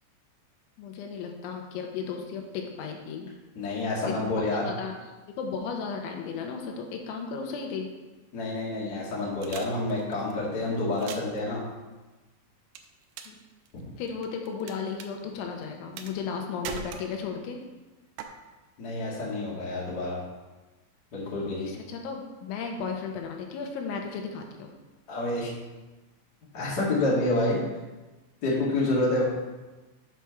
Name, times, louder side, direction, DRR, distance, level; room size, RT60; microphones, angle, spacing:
voice 1, 0.8-3.3 4.1-4.9 5.4-7.9 13.3-13.4 14.0-17.6 21.6-24.7, left 5 dB, 85° left, 3 dB, 3.3 m, -35 dB
voice 2, 3.5-4.7 8.3-11.6 18.8-20.2 21.1-21.7 25.1-25.5 26.5-27.6 28.4-29.2, left 2 dB, 45° left, -5 dB, 1.3 m, -28 dB
sound 1, 9.4-10.3 10.9-11.4 12.8-13.4 13.7-14.7 15.0-15.1 16.0-16.4 16.6-17.5 18.2-18.3, right 7 dB, 85° right, 2.4 m, -39 dB
7.7 x 4.7 x 5.8 m, 1.2 s
omnidirectional pair, 5.3 m